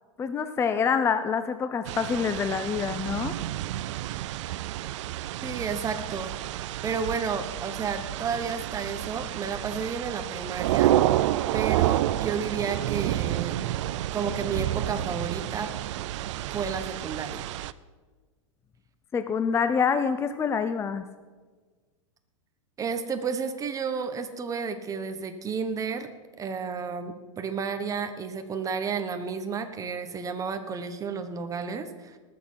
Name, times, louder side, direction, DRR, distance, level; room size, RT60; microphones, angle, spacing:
voice 1, 0.2-3.4 19.1-21.1, left 6 dB, 15° left, 10 dB, 0.5 m, -26 dB
sound 1, 1.8-17.7, right 14 dB, 65° right, 0.5 m, -29 dB
voice 2, 5.4-6.3 6.8-11.0 11.5-13.6 14.1-15.7 16.5-17.5 22.8-26.1 26.4-32.2, right 5 dB, 20° right, 8 dB, 1.1 m, -32 dB
19.0 x 6.7 x 5.6 m, 1.4 s
hypercardioid pair, 125°, 17 cm